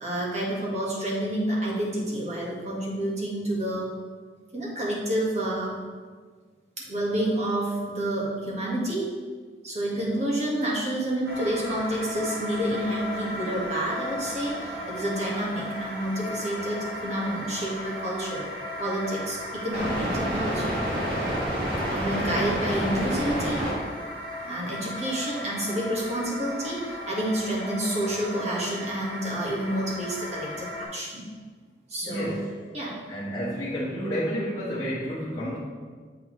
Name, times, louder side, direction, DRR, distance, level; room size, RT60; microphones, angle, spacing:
voice 1, 0.0-3.9 4.5-5.8 6.8-9.1 9.6-18.5 18.8-20.8 21.9-23.7 24.4-31.3 31.9-32.3 32.7-33.0, right 1 dB, 40° right, -4 dB, 1.6 m, -29 dB
sound 1, 11.3-30.8, equal, 60° right, 1.9 m, -33 dB
voice 2, 32.0-32.6 33.1-35.6, equal, 20° left, -10 dB, 1.4 m, -30 dB
7.4 x 6.1 x 3.2 m, 1.5 s
head